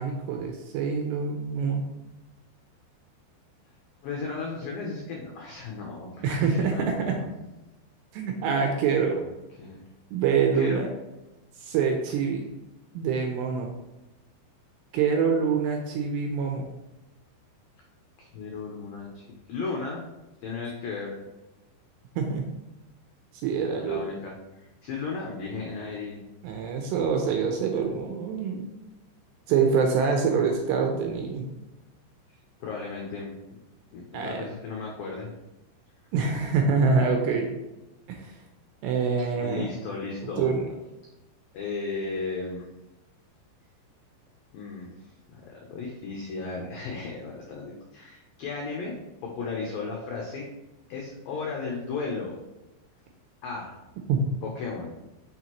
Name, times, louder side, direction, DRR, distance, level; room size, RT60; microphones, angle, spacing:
voice 1, 0.0-1.9 6.2-7.2 8.1-9.2 10.1-10.9 11.6-12.5 12.9-13.7 14.9-16.7 22.2-22.4 23.4-24.0 26.4-28.7 29.5-31.5 34.1-34.4 36.1-37.5 38.1-38.4 38.8-39.7 40.2-40.6 54.1-54.3, right 5 dB, 80° right, 3 dB, 2.5 m, -25 dB
voice 2, 4.0-7.3 9.1-9.3 9.6-9.8 10.5-10.9 18.2-19.2 19.5-20.1 20.4-21.1 23.8-26.2 32.6-33.3 33.9-35.3 39.4-40.6 41.5-42.7 44.5-44.9 45.3-48.9 49.2-50.5 50.9-52.4 53.4-53.7 54.4-54.9, left 4 dB, 85° left, -1 dB, 2.0 m, -35 dB
6.6 x 6.3 x 3.0 m, 1.0 s
omnidirectional pair, 5.4 m